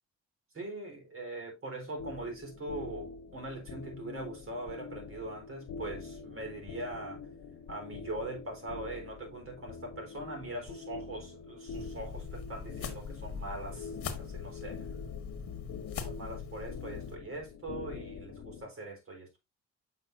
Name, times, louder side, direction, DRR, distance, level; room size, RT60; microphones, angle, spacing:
voice 1, 0.5-7.2 7.7-14.9 16.0-19.4, right 2 dB, 45° right, 3.8 m, -41 dB
sound 1, 2.0-18.7, left 5 dB, 70° left, 0.9 m, -45 dB
sound 2, 11.7-17.2, left 6 dB, 50° left, 1.3 m, -42 dB
7.8 x 5.6 x 2.5 m
cardioid pair, 90°, 30 cm